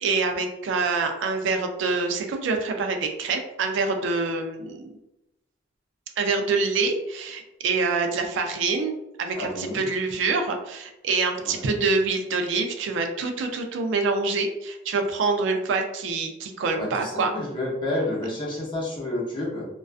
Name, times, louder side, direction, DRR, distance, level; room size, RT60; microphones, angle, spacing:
voice 1, 0.0-4.9 6.2-8.9 9.2-17.3, right 4 dB, 75° right, 4 dB, 0.4 m, -26 dB
voice 2, 9.4-9.8 11.4-11.8 16.8-19.7, left 1 dB, 25° left, -5 dB, 0.6 m, -30 dB
2.3 x 2.2 x 2.3 m, 0.95 s
head